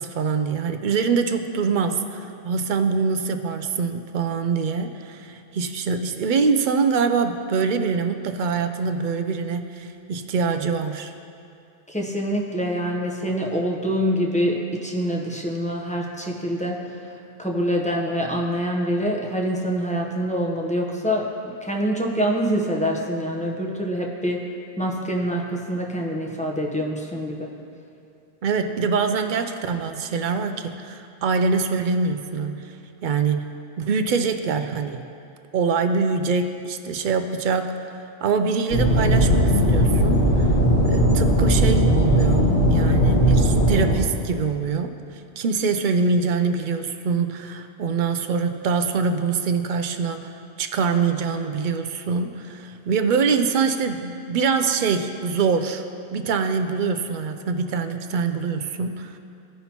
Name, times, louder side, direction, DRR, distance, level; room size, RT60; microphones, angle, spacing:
voice 1, 0.0-11.1 28.4-32.8 33.0-35.0 35.5-37.9 38.2-40.5 40.8-44.9 45.4-50.3 50.6-55.8 56.1-59.2, right 5 dB, 60° right, 7 dB, 0.6 m, -24 dB
voice 2, 11.9-17.0 17.4-21.3 21.6-24.4 24.8-27.5, equal, 10° left, -1 dB, 0.7 m, -25 dB
sound 1, 38.7-43.9, equal, 50° left, 1.8 m, -18 dB
15.5 x 5.6 x 2.9 m, 2.5 s
omnidirectional pair, 1.1 m